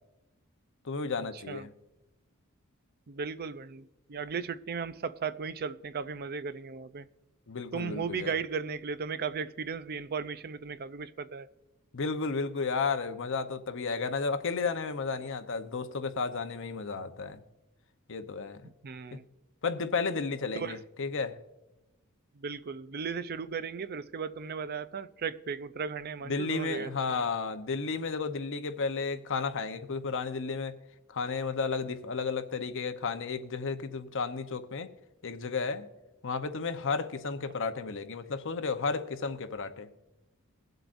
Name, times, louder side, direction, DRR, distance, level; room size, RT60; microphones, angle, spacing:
voice 1, 0.8-1.7 7.5-8.3 11.9-17.4 18.1-18.6 19.1-19.2 19.6-21.4 26.2-30.7 31.1-34.9 35.2-35.9 36.2-39.9, left 4 dB, 60° left, 0.9 m, -33 dB
voice 2, 3.1-7.1 7.7-11.5 18.8-19.2 20.5-20.8 22.4-27.2, right 5 dB, 45° right, 0.5 m, -36 dB
22.0 x 7.9 x 2.6 m
head